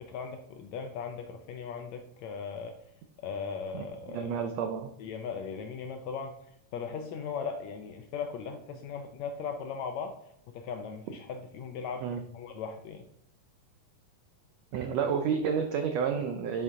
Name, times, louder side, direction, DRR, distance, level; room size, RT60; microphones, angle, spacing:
voice 1, 0.0-2.7 3.2-4.5 5.0-10.2 10.5-13.0, left 6 dB, 80° left, 5 dB, 1.6 m, -38 dB
voice 2, 3.7-4.9 12.0-12.2 14.7-16.6, right 6 dB, 85° right, 5 dB, 1.4 m, -30 dB
7.0 x 6.8 x 3.7 m, 0.70 s
omnidirectional pair, 3.7 m